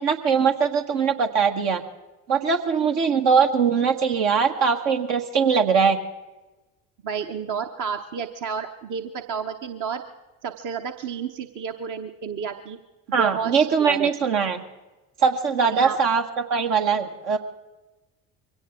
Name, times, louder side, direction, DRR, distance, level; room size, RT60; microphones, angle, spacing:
voice 1, 0.0-1.8 2.3-6.0 13.1-14.6 15.2-17.4, right 6 dB, 70° right, 3 dB, 1.8 m, -21 dB
voice 2, 7.0-10.0 10.4-12.8 13.1-13.5 13.8-14.1 15.6-16.0, right 6 dB, 50° right, 6 dB, 1.1 m, -30 dB
23.0 x 17.0 x 3.7 m, 1.1 s
hypercardioid pair, 60°, 41 cm